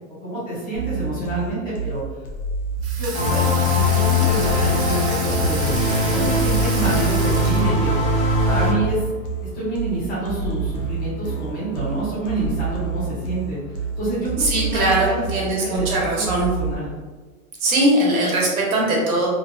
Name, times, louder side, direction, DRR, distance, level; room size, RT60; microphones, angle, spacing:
voice 1, 0.2-2.0 2.9-9.0 9.4-13.6 14.0-15.2 15.6-16.9, right 2 dB, 15° left, -10 dB, 0.5 m, -28 dB
sound 1, 0.7-16.7, right 5 dB, 85° left, 0.9 m, -29 dB
Water tap faucet / Sink (filling or washing), 2.8-8.1, right 4 dB, 50° right, 0.6 m, -32 dB
sound 2, 3.1-8.7, left 2 dB, 40° left, 0.8 m, -20 dB
voice 2, 14.4-16.5 17.6-19.3, right 1 dB, 80° right, -2 dB, 1.0 m, -20 dB
2.7 x 2.2 x 2.5 m, 1.3 s
supercardioid pair, 180°, 42 cm